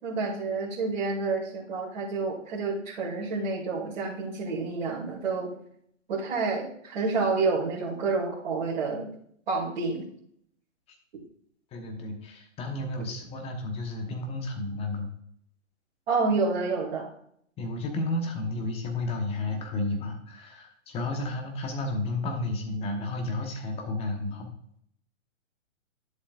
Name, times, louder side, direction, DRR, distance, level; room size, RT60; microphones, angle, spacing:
voice 1, 0.0-5.5 6.1-9.1 9.5-10.0 16.1-17.1, right 4 dB, 50° right, -7 dB, 2.7 m, -29 dB
voice 2, 11.7-15.1 17.6-24.5, left 2 dB, 15° left, 3 dB, 1.2 m, -32 dB
11.0 x 7.2 x 2.5 m, 0.67 s
hypercardioid pair, 135°, 39 cm